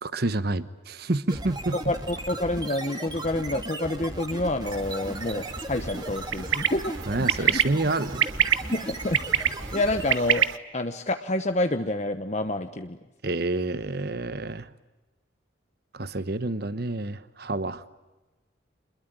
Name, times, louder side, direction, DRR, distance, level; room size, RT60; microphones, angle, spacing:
voice 1, 0.0-1.8 7.1-8.2 13.2-14.7 15.9-17.8, right 2 dB, 50° right, 14 dB, 1.1 m, -28 dB
sound 1, 1.3-10.5, right 1 dB, 20° right, 2.1 m, -37 dB
voice 2, 1.7-7.6 8.7-10.5 10.7-13.0, left 1 dB, 35° left, 8 dB, 1.0 m, -28 dB
sound 2, 4.6-10.6, right 9 dB, 80° right, 1.1 m, -28 dB
27.0 x 21.5 x 9.3 m, 1.1 s
head